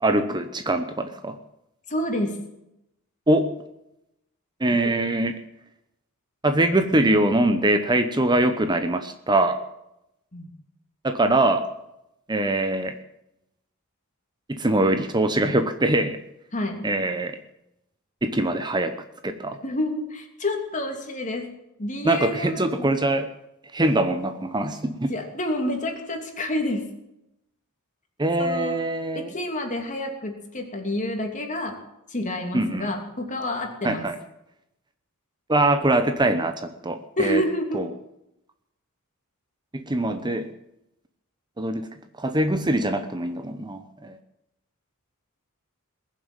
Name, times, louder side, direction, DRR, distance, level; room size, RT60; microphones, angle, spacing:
voice 1, 0.0-1.4 3.3-3.5 4.6-5.4 6.4-9.6 11.0-11.7 12.3-12.9 14.5-16.2 16.8-17.4 18.2-18.9 19.2-19.6 22.0-23.3 23.7-25.1 28.2-29.3 32.5-32.9 33.8-34.2 35.5-37.4 37.7-37.9 39.7-40.5 41.6-41.9 42.2-44.2, right 1 dB, 20° right, 8 dB, 0.9 m, -23 dB
voice 2, 1.9-2.4 4.8-4.9 10.3-10.5 16.5-16.8 19.6-21.5 21.8-22.9 25.1-26.9 28.4-28.8 29.1-31.8 32.1-34.1 37.2-37.8, left 1 dB, 35° left, 4 dB, 2.9 m, -28 dB
21.0 x 7.6 x 9.0 m, 0.85 s
head